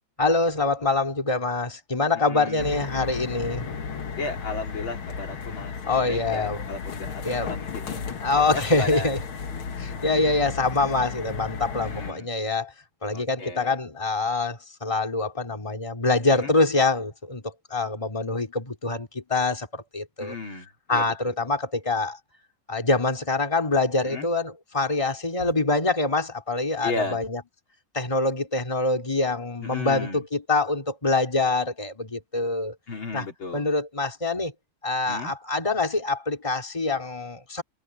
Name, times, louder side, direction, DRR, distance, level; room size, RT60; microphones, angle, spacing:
voice 1, 0.2-3.7 5.9-6.6 7.2-7.5 8.2-9.2 9.8-12.7 13.0-17.4 17.7-20.3 20.9-22.2 22.7-27.4 27.9-32.7 33.1-33.2 33.5-34.5 34.8-37.6, left 3 dB, 15° left, 3.3 m, -25 dB
voice 2, 2.1-2.7 4.2-9.1 11.8-12.3 13.1-13.8 16.3-16.5 20.2-21.6 24.0-24.3 26.8-27.2 29.6-30.2 32.9-33.7 35.1-35.3, left 3 dB, 70° left, 4.1 m, -35 dB
sound 1, 2.6-12.1, left 5 dB, 90° left, 2.5 m, -34 dB
omnidirectional pair, 2.2 m